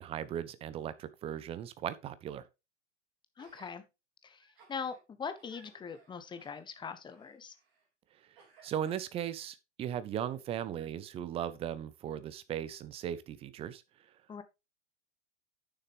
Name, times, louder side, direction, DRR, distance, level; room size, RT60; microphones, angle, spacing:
voice 1, 0.0-2.5 8.2-8.3 8.6-13.8, right 10 dB, 15° right, 0.5 m, -37 dB
voice 2, 3.4-3.8 4.2-7.5 14.3-14.4, left 6 dB, 10° left, 0.8 m, -42 dB
Gasp, 3.4-3.8 4.3-5.0 5.4-7.9 8.4-9.4 10.1-10.2, right 5 dB, 50° right, 3.3 m, -62 dB
9.2 x 6.6 x 3.4 m
figure-of-eight pair, 95°, 37 cm